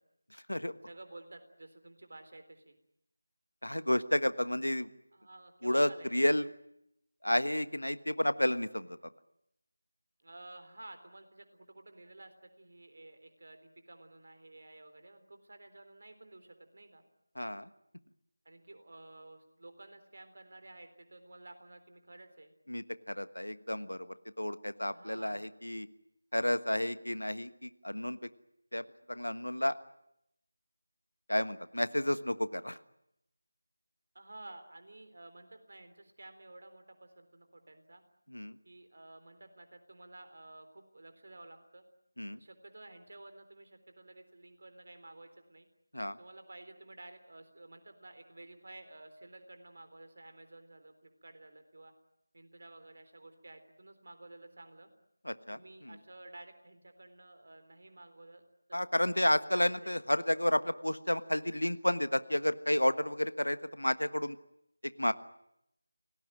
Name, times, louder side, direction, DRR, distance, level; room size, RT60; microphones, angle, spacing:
voice 1, 0.9-2.8 5.1-6.3 10.2-17.0 18.5-22.5 24.9-25.4 34.1-38.0 38.6-41.8 42.3-45.7 46.2-51.9 52.3-54.9 55.5-58.4 58.7-58.8 59.5-60.0, right 2 dB, 45° right, 8 dB, 3.7 m, -53 dB
voice 2, 3.6-4.9 5.6-6.5 7.2-9.0 17.3-17.7 22.7-24.1 24.4-25.9 26.3-28.3 28.7-29.8 31.3-32.8 38.3-38.6 42.2-42.4 45.9-46.2 55.2-55.9 58.7-64.4 65.0-65.1, left 1 dB, 75° left, 13 dB, 1.3 m, -31 dB
27.5 x 18.5 x 9.1 m, 0.79 s
figure-of-eight pair, 165°, 0 cm